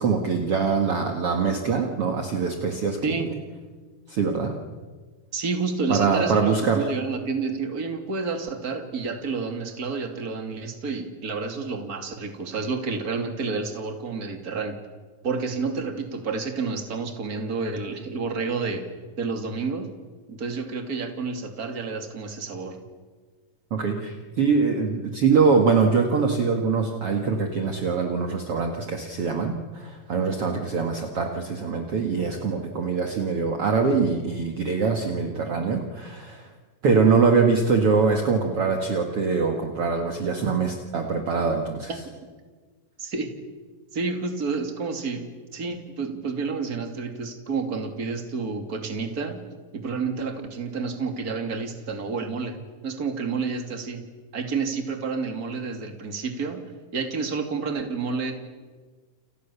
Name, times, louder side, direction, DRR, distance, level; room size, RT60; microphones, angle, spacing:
voice 1, 0.0-3.0 4.1-4.5 5.9-6.9 23.7-36.5 36.8-41.9, right 5 dB, 50° right, 4 dB, 2.5 m, -23 dB
voice 2, 5.3-14.8 15.2-18.8 19.2-19.9 20.3-22.8 36.8-36.9 41.9-42.0 43.0-43.3 43.9-45.2 45.5-49.5 49.7-52.6 52.8-54.0 54.3-56.6 56.9-58.3, right 4 dB, 30° right, 5 dB, 2.9 m, -29 dB
30.0 x 27.5 x 7.1 m, 1.5 s
omnidirectional pair, 3.8 m